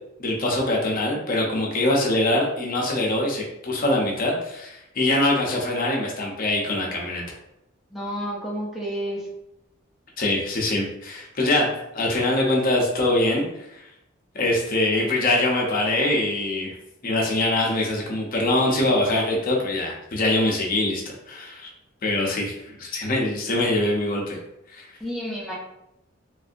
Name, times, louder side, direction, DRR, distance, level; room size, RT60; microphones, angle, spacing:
voice 1, 0.2-7.2 10.2-13.8 14.3-16.7 17.0-21.0 21.3-21.7 22.0-24.4 24.7-24.9, left 1 dB, 45° left, -2 dB, 0.6 m, -23 dB
voice 2, 7.9-9.3 25.0-25.6, equal, ahead, -5 dB, 0.6 m, -30 dB
3.1 x 2.6 x 2.5 m, 0.85 s
head